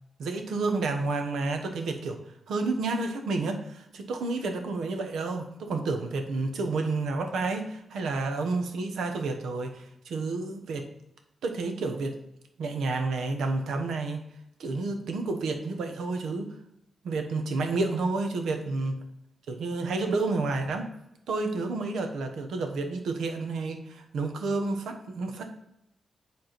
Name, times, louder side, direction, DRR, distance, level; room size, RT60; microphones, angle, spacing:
voice 1, 0.2-2.2 2.5-10.9 11.4-12.2 12.6-14.3 14.6-16.5 17.0-19.0 19.5-20.9 21.3-25.5, right 3 dB, 90° right, 5 dB, 1.0 m, -30 dB
7.8 x 3.6 x 5.9 m, 0.81 s
cardioid pair, 75°, 0 cm